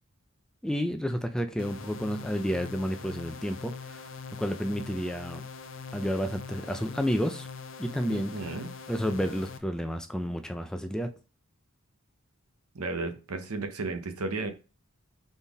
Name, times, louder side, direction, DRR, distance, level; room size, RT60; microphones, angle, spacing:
voice 1, 0.6-4.0 4.4-5.4 5.9-7.5 7.8-8.6 8.9-11.1, equal, 5° left, 6 dB, 0.4 m, -31 dB
sound 1, 1.6-9.6, left 5 dB, 55° left, 0.5 m, -43 dB
voice 2, 8.1-8.7 12.7-14.5, right 3 dB, 90° right, 7 dB, 0.8 m, -34 dB
4.1 x 3.6 x 3.5 m, 0.31 s
head